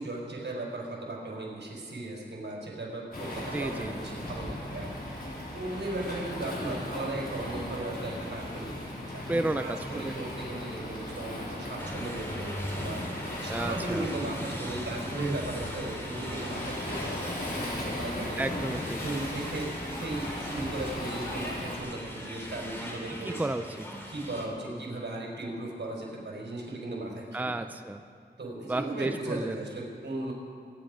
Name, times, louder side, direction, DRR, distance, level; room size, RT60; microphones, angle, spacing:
voice 1, 0.0-4.9 5.5-13.0 13.4-17.2 17.5-18.4 19.0-23.5 24.1-27.7 28.4-30.3, right 2 dB, 85° right, -2 dB, 4.4 m, -36 dB
Waves surf, 3.1-21.8, left 1 dB, 55° left, 4.4 m, -37 dB
voice 2, 3.5-3.9 9.3-10.1 13.5-14.1 18.4-19.0 23.2-23.9 24.7-24.8 27.3-28.0 28.7-29.6, right 2 dB, 10° right, 9 dB, 0.5 m, -32 dB
sound 1, 11.8-24.5, equal, 10° left, 3.3 m, -40 dB
26.0 x 10.5 x 5.0 m, 2.3 s
wide cardioid pair, 105°, 18 cm